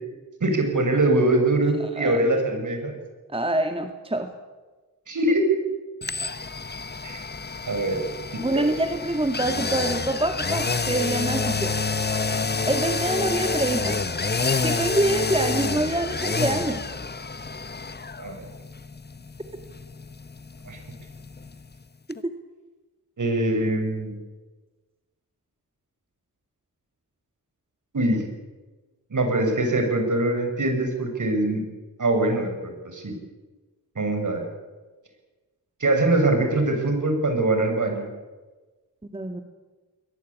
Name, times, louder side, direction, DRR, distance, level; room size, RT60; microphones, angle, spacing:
voice 1, 0.4-3.0 5.1-5.5 7.0-7.2 7.7-8.0 18.2-18.4 20.7-20.8 23.2-24.2 27.9-28.3 29.1-31.6 32.0-33.2 33.9-34.4 35.8-38.1, right 2 dB, 55° right, 4 dB, 6.8 m, -23 dB
voice 2, 3.3-4.3 8.4-11.7 12.7-14.0 14.6-16.8 39.1-39.4, right 1 dB, 15° right, 6 dB, 2.0 m, -25 dB
sound 1, 6.0-21.8 22.1-22.2, left 4 dB, 25° left, 1.2 m, -28 dB
22.0 x 19.5 x 8.7 m, 1.3 s
cardioid pair, 75°, 37 cm